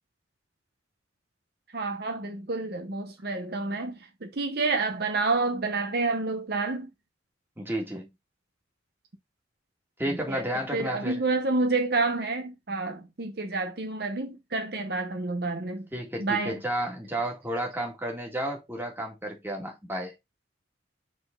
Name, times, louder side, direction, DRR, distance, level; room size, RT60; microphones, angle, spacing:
voice 1, 1.7-6.9 10.1-10.4 10.7-15.9 16.2-16.6, right 3 dB, 60° right, 1.0 m, -29 dB
voice 2, 7.6-8.1 10.0-11.2 15.9-20.1, right 1 dB, 10° right, 2.0 m, -32 dB
7.6 x 4.0 x 3.8 m
head